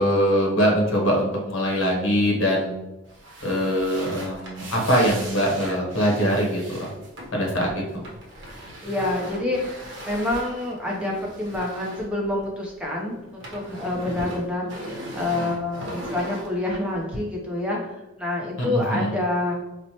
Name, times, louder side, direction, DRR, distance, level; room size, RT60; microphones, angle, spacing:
voice 1, 0.0-2.7 3.4-6.9 7.3-7.7 7.9-8.1 18.6-19.1, equal, 60° left, -1 dB, 0.9 m, -22 dB
sound 1, 3.0-12.8 13.1-17.2, equal, 60° right, 0.8 m, -38 dB
voice 2, 8.8-19.6, left 2 dB, 5° right, -3 dB, 0.6 m, -27 dB
4.4 x 2.1 x 2.8 m, 1.0 s
head